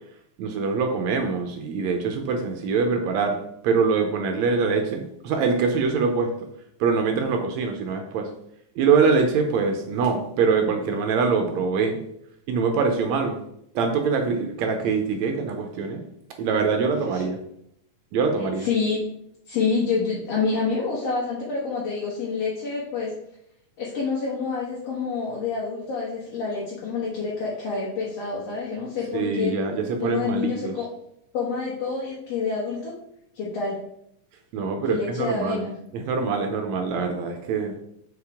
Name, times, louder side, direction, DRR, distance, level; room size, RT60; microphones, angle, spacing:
voice 1, 0.4-6.3 6.8-8.3 8.8-12.0 12.5-13.4 13.8-16.0 16.4-17.4 18.1-18.7 29.1-30.7 34.5-35.7 35.9-37.7, right 5 dB, 75° right, 4 dB, 1.8 m, -24 dB
voice 2, 18.6-19.0 19.5-23.2 23.8-29.6 30.0-30.9 31.3-32.9 33.4-33.8 34.9-35.7, left 4 dB, 60° left, -6 dB, 2.2 m, -27 dB
6.9 x 4.8 x 3.5 m, 0.75 s
omnidirectional pair, 3.5 m